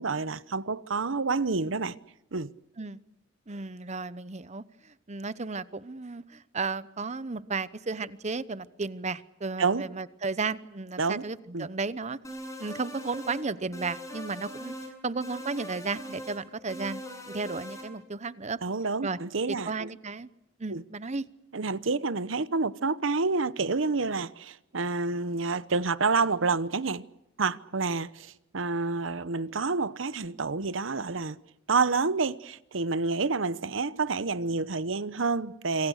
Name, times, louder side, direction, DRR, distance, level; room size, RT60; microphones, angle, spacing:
voice 1, 0.0-2.0 2.3-2.5 9.6-9.8 11.0-11.2 11.5-11.7 18.6-19.9 20.7-20.8 21.5-27.0 27.4-31.4 31.7-35.9, right 4 dB, 70° right, 0.9 m, -28 dB
voice 2, 3.5-4.6 5.1-12.2 12.6-14.7 15.0-17.0 17.3-18.6 19.0-19.2 19.5-20.3 20.6-21.2, right 4 dB, 35° right, 0.9 m, -34 dB
sound 1, 12.2-13.4 13.7-14.9 15.2-16.4 16.7-17.9, equal, 15° left, 7.6 m, -41 dB
26.5 x 25.0 x 6.5 m
head